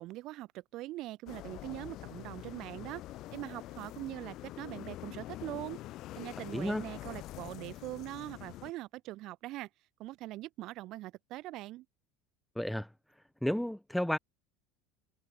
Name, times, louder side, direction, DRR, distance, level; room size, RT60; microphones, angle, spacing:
voice 1, 0.0-3.0 3.3-5.8 6.1-9.7 10.0-11.8, right 17 dB, 45° right, 4.9 m, -42 dB
sound 1, 1.3-8.7, left 16 dB, 45° left, 2.6 m, -45 dB
voice 2, 6.5-6.8 12.6-12.9 13.4-14.2, equal, ahead, 0.4 m, -31 dB
cardioid pair, 160°, 0 cm